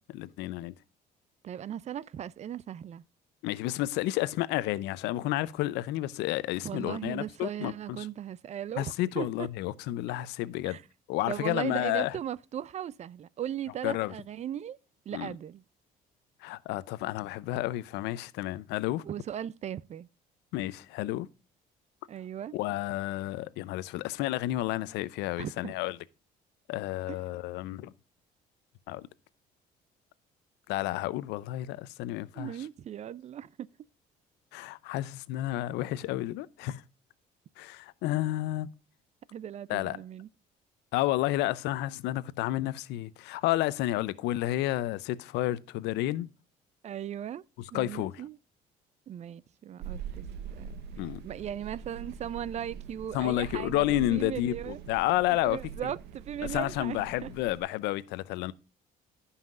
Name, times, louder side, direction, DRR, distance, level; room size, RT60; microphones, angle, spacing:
voice 1, 0.1-0.7 3.4-8.1 8.8-10.8 11.1-12.2 13.8-14.1 15.1-15.3 16.4-19.0 20.5-21.3 22.5-26.0 26.7-27.9 28.9-29.1 30.7-32.5 34.5-36.8 37.6-38.7 39.7-40.0 40.9-46.3 47.7-48.2 51.0-51.2 53.1-55.6 56.5-58.5, left 16 dB, 90° left, 0.6 m, -31 dB
voice 2, 1.4-3.0 6.6-9.5 10.6-10.8 11.3-14.8 15.1-15.6 19.1-20.1 22.1-22.6 25.4-25.7 27.1-27.2 32.3-33.7 39.3-40.3 46.8-47.4 47.7-48.4 49.1-50.8 51.2-54.8 55.3-57.3, right 10 dB, 40° right, 0.4 m, -38 dB
sound 1, 49.8-57.6, right 7 dB, 80° right, 1.0 m, -43 dB
16.0 x 5.7 x 2.4 m
cardioid pair, 110°, 17 cm